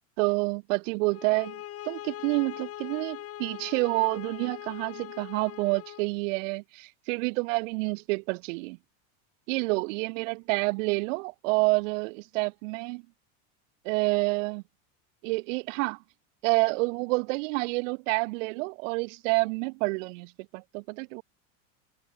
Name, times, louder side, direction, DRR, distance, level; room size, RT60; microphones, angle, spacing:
voice 1, 0.2-1.6 1.8-8.8 9.5-13.0 13.8-14.6 15.2-16.0 16.4-21.2, right 27 dB, 65° right, 4.9 m, -28 dB
sound 1, 1.1-6.1, left 13 dB, 35° left, 6.6 m, -41 dB
supercardioid pair, 160°, 42 cm